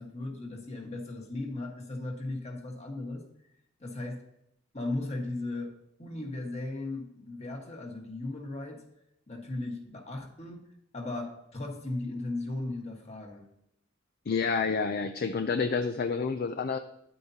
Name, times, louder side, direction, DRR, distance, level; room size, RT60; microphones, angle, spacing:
voice 1, 0.0-3.2 3.8-4.2 4.7-5.7 6.0-8.8 9.3-10.6 10.9-13.5, left 2 dB, 35° left, 2 dB, 1.5 m, -36 dB
voice 2, 14.3-16.8, left 5 dB, 50° left, 8 dB, 0.4 m, -29 dB
9.4 x 8.3 x 2.8 m, 0.77 s
head